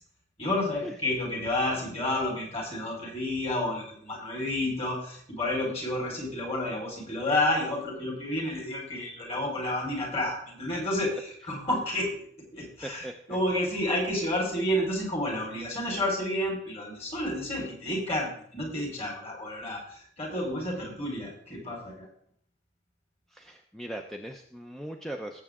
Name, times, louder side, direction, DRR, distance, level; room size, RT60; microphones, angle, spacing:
voice 1, 0.4-12.2 12.5-22.1, left 1 dB, 35° left, -1 dB, 4.5 m, -30 dB
voice 2, 12.8-13.4 23.3-25.4, right 1 dB, ahead, 3 dB, 0.6 m, -39 dB
18.0 x 7.6 x 3.7 m, 0.62 s
head